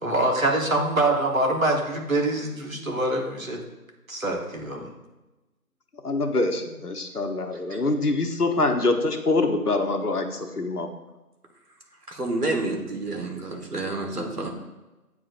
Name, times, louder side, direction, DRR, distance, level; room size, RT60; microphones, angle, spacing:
voice 1, 0.0-3.6 4.1-4.9, right 1 dB, 60° right, 1 dB, 1.3 m, -24 dB
voice 2, 6.0-10.9, left 2 dB, 75° left, 5 dB, 0.9 m, -25 dB
voice 3, 12.1-14.5, right 2 dB, 75° right, 2 dB, 1.5 m, -29 dB
8.5 x 4.7 x 2.5 m, 1.1 s
figure-of-eight pair, 175°, 46 cm